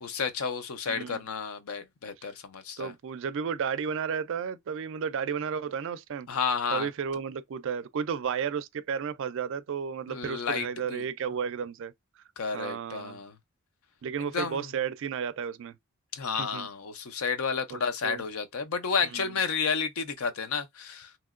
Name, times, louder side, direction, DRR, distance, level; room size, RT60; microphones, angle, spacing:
voice 1, 0.0-2.9 6.3-6.9 10.1-11.0 12.4-13.3 14.3-14.7 16.1-21.1, left 5 dB, 80° left, 0.6 m, -31 dB
voice 2, 0.9-1.2 2.2-2.3 2.8-6.3 6.7-11.9 12.5-13.2 14.0-15.8 16.4-16.7 17.7-18.2 19.0-19.4, right 7 dB, 65° right, 0.4 m, -33 dB
3.0 x 2.8 x 2.4 m
head